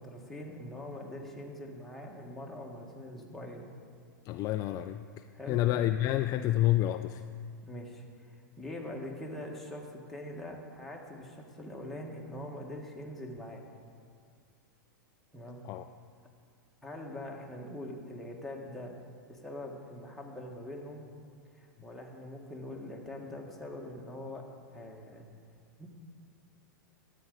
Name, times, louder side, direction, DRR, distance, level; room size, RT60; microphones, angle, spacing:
voice 1, 0.0-3.7 5.3-5.6 7.6-13.6 15.3-15.6 16.8-18.9 19.3-21.1 21.5-24.4 24.7-25.3 25.8-25.9, left 1 dB, ahead, -2 dB, 1.6 m, -43 dB
voice 2, 4.3-7.2 15.6-15.8, left 14 dB, 35° left, 9 dB, 0.3 m, -29 dB
13.5 x 8.6 x 3.9 m, 2.2 s
hypercardioid pair, 105°, 11 cm